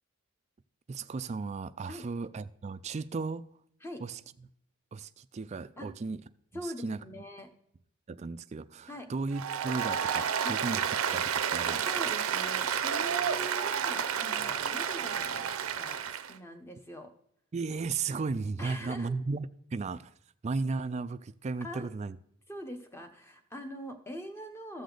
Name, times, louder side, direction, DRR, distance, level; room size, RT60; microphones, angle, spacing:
voice 1, 0.9-3.4 4.0-4.1 4.9-6.2 6.8-7.0 8.1-10.8 11.1-11.8 17.5-20.1 20.4-22.2, right 4 dB, 30° right, 0.3 m, -35 dB
voice 2, 6.5-7.5 8.9-9.1 10.4-10.6 11.8-15.4 15.7-17.1 18.6-19.1 21.6-21.9 22.5-24.8, equal, 10° left, 0.9 m, -43 dB
Applause, 9.3-16.3, right 8 dB, 75° right, 0.6 m, -31 dB
14.0 x 6.6 x 3.9 m
head